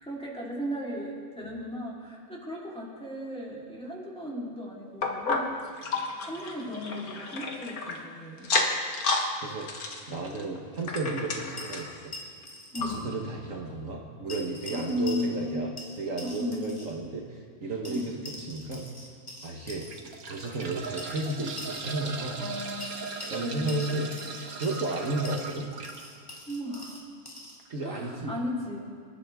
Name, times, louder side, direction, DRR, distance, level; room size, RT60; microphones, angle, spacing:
voice 1, 0.1-5.4 6.3-8.5 12.7-13.2 14.7-15.6 16.2-16.7 17.8-18.1 22.3-22.8 23.2-24.0 26.5-27.0 27.8-28.8, left 1 dB, 5° left, -6 dB, 3.7 m, -35 dB
sound 1, 5.0-8.0 8.4-9.3 9.6-12.0 12.4-12.5 12.8-12.9 13.5-13.6, left 3 dB, 80° left, 2.0 m, -31 dB
voice 2, 10.1-12.0 12.8-15.7 16.0-18.2 18.5-18.9 19.4-19.9 20.3-22.4 23.3-24.1 24.6-25.7 27.7-28.4, right 2 dB, 60° right, 0 dB, 1.8 m, -33 dB
sound 2, 11.6-13.0 13.3-13.4 14.3-15.5 15.8-17.0 17.8-20.0 21.0-22.0 22.8-24.9 25.2-27.6, left 2 dB, 20° left, 3.0 m, -44 dB
sound 3, 17.7-17.9 18.6-18.7 19.6-26.0 27.6-27.7 28.0-28.1, right 4 dB, 80° right, 1.7 m, -39 dB
26.0 x 13.0 x 3.6 m, 2.2 s
omnidirectional pair, 1.5 m